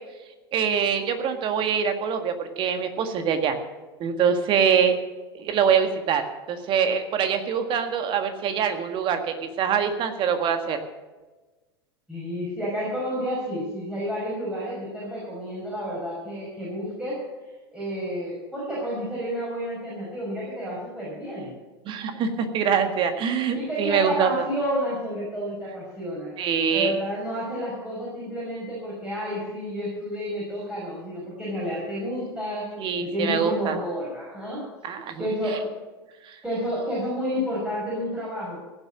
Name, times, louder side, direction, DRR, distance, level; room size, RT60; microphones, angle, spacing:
voice 1, 0.5-3.6 4.0-5.0 5.3-6.2 6.5-10.8 21.8-24.3 26.4-26.9 32.8-33.8 34.8-35.3 36.3-36.4, right 7 dB, 40° right, 7 dB, 1.7 m, -24 dB
voice 2, 12.1-17.2 17.7-21.6 23.5-26.3 26.7-32.7 33.0-34.6 35.2-35.7 36.4-38.6, equal, 5° right, -6 dB, 5.7 m, -30 dB
16.5 x 7.8 x 7.5 m, 1.2 s
figure-of-eight pair, 85°, 13 cm